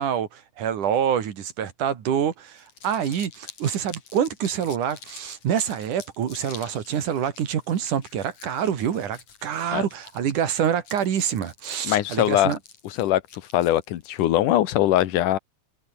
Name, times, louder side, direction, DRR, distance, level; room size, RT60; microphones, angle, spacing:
voice 1, 0.0-12.6, right 8 dB, 75° right, 3.7 m, -26 dB
Crumpling crinkling, 2.5-14.3, left 6 dB, 60° left, 4.7 m, -47 dB
voice 2, 11.8-12.5 13.0-13.2 13.5-15.4, left 13 dB, 85° left, 2.7 m, -21 dB
omnidirectional pair, 3.6 m